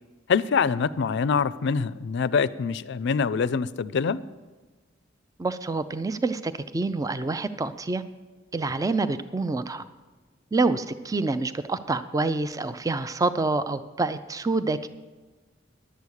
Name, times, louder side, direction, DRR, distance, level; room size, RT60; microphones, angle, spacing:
voice 1, 0.3-4.2, left 5 dB, 60° left, 17 dB, 0.4 m, -25 dB
voice 2, 5.4-8.0 8.5-9.8 10.5-14.9, right 3 dB, 15° right, 12 dB, 0.4 m, -27 dB
11.0 x 8.4 x 6.4 m, 1.3 s
head